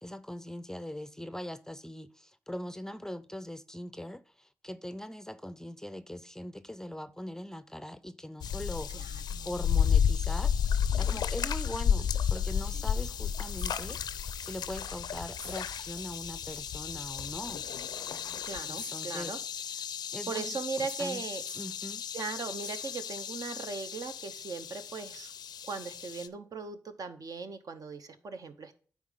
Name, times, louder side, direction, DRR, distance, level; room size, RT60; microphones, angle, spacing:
voice 1, 0.0-9.0 9.4-17.6 18.7-19.3 20.1-21.2 21.6-22.1, left 1 dB, 10° left, 0.5 m, -41 dB
sound 1, 8.4-26.3, left 8 dB, 80° left, 0.4 m, -32 dB
voice 2, 8.9-9.5 18.4-19.4 20.3-21.4 22.1-25.3 25.6-28.7, right 4 dB, 60° right, 0.8 m, -38 dB
sound 2, 11.1-11.2 12.0-13.1 13.3-14.2 14.5-14.6 15.4-16.2 17.3-17.4 18.7-19.8 20.9-21.8 22.6-23.5 25.3-25.4, right 1 dB, 20° right, 1.1 m, -51 dB
9.4 x 3.7 x 4.9 m
supercardioid pair, 45°, 7 cm